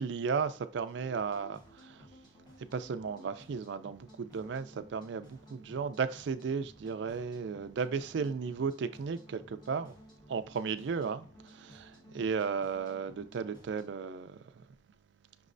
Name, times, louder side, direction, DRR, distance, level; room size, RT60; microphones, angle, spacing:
voice 1, 0.0-2.1 2.6-9.9 10.3-14.7, right 5 dB, 65° right, 0.4 m, -35 dB
sound 1, 0.9-13.9, equal, 20° left, 1.2 m, -56 dB
6.0 x 3.1 x 2.6 m
head